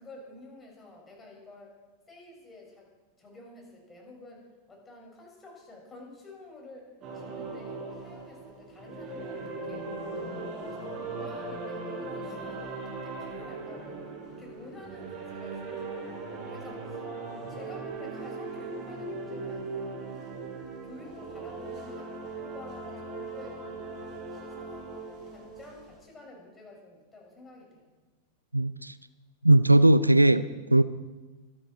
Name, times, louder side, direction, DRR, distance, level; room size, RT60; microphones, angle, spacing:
voice 1, 0.0-1.7 2.1-2.9 3.2-6.9 7.1-9.9 10.2-14.0 14.4-17.0 17.5-20.0 20.8-22.1 22.4-23.9 24.3-24.9 25.3-28.0, left 2 dB, 15° left, -1 dB, 6.4 m, -49 dB
sound 1, 7.0-26.0, right 3 dB, 30° right, 6.9 m, -39 dB
voice 2, 28.5-28.9 29.4-30.4 30.7-30.8, right 1 dB, 85° right, 16 dB, 0.5 m, -19 dB
25.0 x 11.5 x 4.6 m, 1.2 s
figure-of-eight pair, 90°, 0 cm